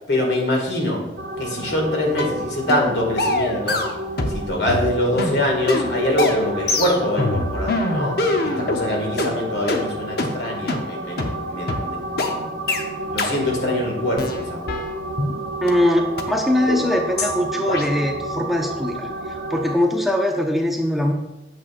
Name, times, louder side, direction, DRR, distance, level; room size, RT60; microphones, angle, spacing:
voice 1, 0.1-1.0 1.4-3.8 4.3-12.5 13.1-14.6, left 1 dB, 80° left, 0 dB, 2.1 m, -24 dB
sound 1, 1.2-19.8, right 1 dB, 60° right, 0.6 m, -31 dB
sound 2, 2.2-2.4 2.7-2.9 3.2-4.4 4.7-8.8 9.2-9.3 9.7-9.8 10.2-10.3 10.7-10.8 11.2-11.3 11.7-11.8 12.2-12.3 12.7-12.8 13.2-13.3 13.7-13.8 14.2-15.3 15.7-15.8 16.2-16.3 16.7-16.8 17.2-17.3 17.7-17.8, left 2 dB, 60° left, 0.8 m, -23 dB
voice 2, 15.6-19.1 19.5-21.1, left 1 dB, ahead, 1 dB, 0.6 m, -21 dB
8.6 x 7.4 x 2.5 m, 1.0 s
head